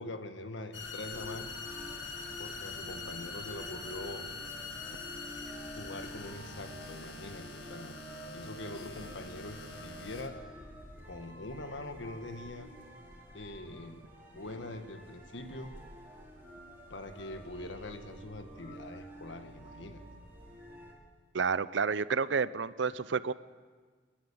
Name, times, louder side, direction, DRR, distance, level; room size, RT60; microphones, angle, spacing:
voice 1, 0.0-1.5 2.4-4.3 5.4-8.0 8.3-10.4 11.0-12.7 13.3-14.0 14.3-15.7 16.9-20.0, left 2 dB, 85° left, 7 dB, 1.6 m, -43 dB
sound 1, 0.7-10.3, left 4 dB, 70° left, 2.3 m, -44 dB
sound 2, 1.1-20.9, equal, 10° right, 4.9 m, -50 dB
voice 2, 21.3-23.3, right 5 dB, 80° right, 17 dB, 0.6 m, -30 dB
28.0 x 11.5 x 8.8 m, 1.5 s
head